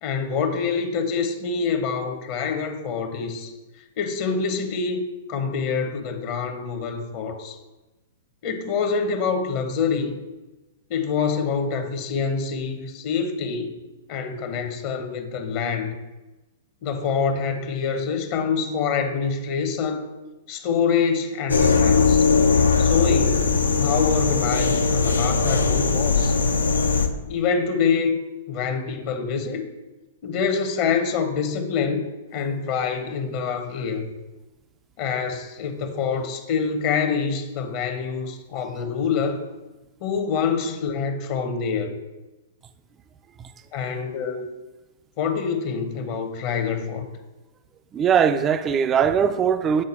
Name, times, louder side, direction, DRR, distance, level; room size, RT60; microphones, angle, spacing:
voice 1, 0.0-3.5 4.0-7.6 8.4-10.1 10.9-13.8 14.1-15.9 16.8-20.1 20.5-22.2 22.8-23.4 23.8-26.3 27.3-28.2 28.5-29.6 30.2-32.1 32.3-34.1 35.0-39.4 40.0-42.0 43.7-44.5 45.2-47.1, left 5 dB, 45° left, 0.8 m, -26 dB
sound 1, 21.5-27.1, left 4 dB, 85° left, 0.5 m, -19 dB
voice 2, 47.9-49.8, right 7 dB, 25° right, 0.3 m, -20 dB
7.5 x 3.9 x 4.3 m
hypercardioid pair, 110°, 0 cm